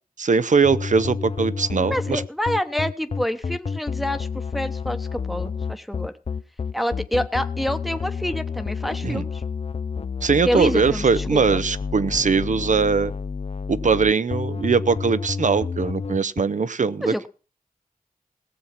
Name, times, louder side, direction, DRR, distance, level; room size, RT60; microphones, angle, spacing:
voice 1, 0.2-2.2 9.0-9.2 10.2-13.1 13.7-17.3, right 5 dB, 60° right, 16 dB, 0.6 m, -21 dB
sound 1, 0.6-16.4, left 5 dB, 45° left, 0.5 m, -30 dB
voice 2, 1.8-6.1 6.7-9.4 10.4-11.6 17.0-17.3, equal, ahead, 9 dB, 1.0 m, -27 dB
17.5 x 7.2 x 5.9 m, 0.37 s
cardioid pair, 45°, 15 cm